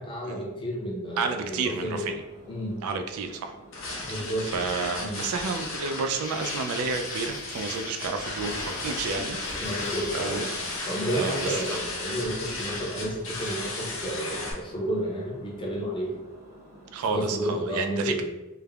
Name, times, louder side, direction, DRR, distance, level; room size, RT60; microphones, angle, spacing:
voice 1, 0.0-2.1 2.5-2.8 4.0-4.7 5.0-5.2 9.6-10.5 10.8-16.2 17.1-18.2, right 1 dB, 25° left, -3 dB, 0.6 m, -31 dB
voice 2, 1.2-2.2 2.8-3.6 4.5-8.5 8.8-9.4 10.1-10.5 11.1-11.6 16.9-18.2, right 4 dB, 90° right, 6 dB, 0.3 m, -30 dB
Engine, 1.6-17.3, right 1 dB, 50° right, 0.7 m, -51 dB
sound 1, 3.7-14.5, left 2 dB, 65° left, 0.7 m, -35 dB
Insect, 6.1-11.8, left 2 dB, 45° left, 1.1 m, -41 dB
3.2 x 2.1 x 2.3 m, 1.0 s
head